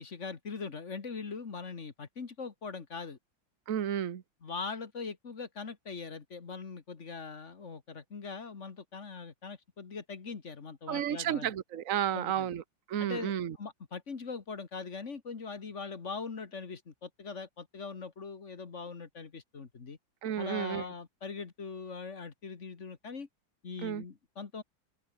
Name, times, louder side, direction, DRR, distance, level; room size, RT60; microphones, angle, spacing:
voice 1, 0.0-3.2 4.4-11.5 12.1-12.5 13.0-13.3 13.6-20.0 20.4-23.3 23.6-24.6, left 5 dB, 40° left, 1.8 m, -41 dB
voice 2, 3.7-4.2 10.9-12.6 12.9-13.6 20.2-20.8 23.8-24.0, right 10 dB, 50° right, 1.4 m, -32 dB
open air
omnidirectional pair, 2.1 m